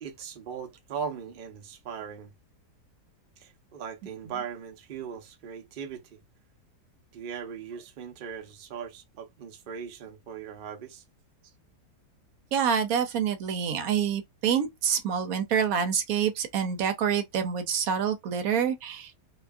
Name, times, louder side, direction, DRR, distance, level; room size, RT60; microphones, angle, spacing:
voice 1, 0.0-2.3 3.4-6.2 7.1-11.0, right 7 dB, 85° right, 0.4 m, -39 dB
voice 2, 12.5-19.2, right 7 dB, 70° right, 0.9 m, -27 dB
2.8 x 2.3 x 2.5 m
omnidirectional pair, 1.8 m